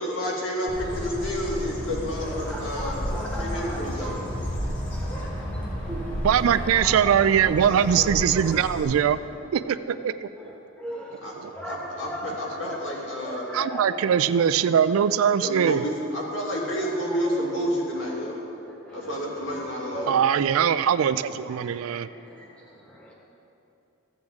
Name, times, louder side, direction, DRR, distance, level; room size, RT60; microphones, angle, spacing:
voice 1, 0.0-3.0 3.3-4.2 7.7-8.1 11.2-11.3 11.6-13.5 15.4-18.4 18.9-20.2, equal, 65° left, -3 dB, 1.8 m, -30 dB
Bird, 0.7-8.8, equal, 35° left, 2.0 m, -32 dB
voice 2, 2.5-3.8 4.9-6.3 6.7-7.1 10.4-12.8 13.2-14.1 16.7-16.9 18.2-18.3 18.7-19.1 19.9-20.1 21.6-22.0 22.3-23.1, equal, 5° left, -3 dB, 1.2 m, -38 dB
voice 3, 6.2-9.2 9.5-10.3 11.4-11.5 12.6-12.8 13.5-15.8 20.1-22.1, right 8 dB, 80° right, 14 dB, 0.3 m, -22 dB
14.0 x 7.9 x 3.6 m, 2.8 s
head